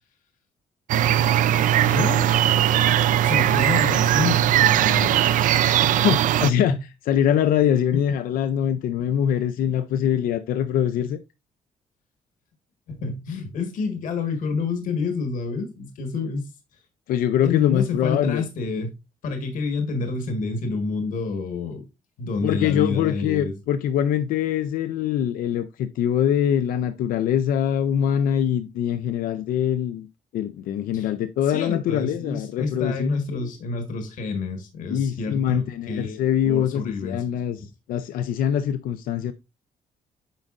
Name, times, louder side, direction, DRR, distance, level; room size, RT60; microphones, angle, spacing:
sound 1, 0.9-6.5, right 11 dB, 70° right, 0.4 m, -19 dB
voice 1, 1.8-2.3 3.2-5.3 5.9-6.1 6.7-6.8 7.9-8.0 12.9-16.5 17.4-18.9 19.2-21.8 22.2-23.6 30.9-31.1 31.4-36.2 36.4-37.2, left 4 dB, 70° left, 1.5 m, -28 dB
voice 2, 6.0-6.7 7.1-11.2 17.1-18.4 22.4-30.1 30.3-33.5 34.9-39.3, left 9 dB, 85° left, 0.5 m, -23 dB
9.0 x 5.2 x 2.5 m
cardioid pair, 140°, 14 cm